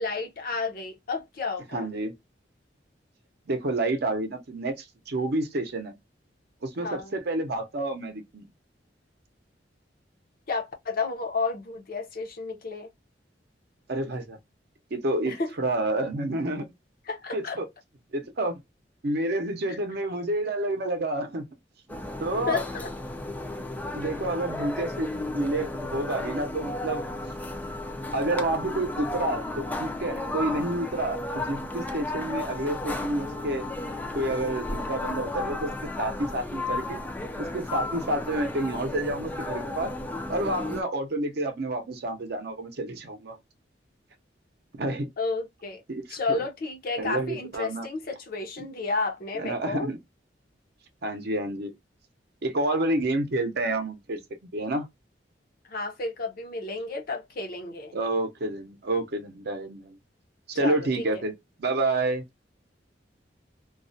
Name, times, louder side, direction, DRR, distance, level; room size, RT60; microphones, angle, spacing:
voice 1, 0.0-1.9 6.8-7.1 10.5-12.9 15.3-15.5 17.1-17.6 19.7-19.8 22.5-22.9 24.6-24.7 45.2-45.8 46.1-49.9 55.7-58.0 60.6-61.1, left 3 dB, 55° left, 0.6 m, -31 dB
voice 2, 1.7-2.1 3.5-5.9 6.6-8.5 13.9-14.4 14.9-16.7 17.3-17.7 18.1-18.6 19.0-21.5 22.2-22.6 23.9-27.0 28.1-33.7 34.1-37.0 37.4-39.9 40.3-43.4 44.8-45.1 45.9-46.4 47.0-47.9 49.4-50.0 51.0-51.7 52.4-54.2 54.5-54.9 57.9-60.0 60.5-61.3 61.6-62.2, right 2 dB, 60° right, 0.6 m, -29 dB
sound 1, 21.9-40.8, left 2 dB, 10° left, 0.3 m, -34 dB
2.3 x 2.1 x 2.5 m
head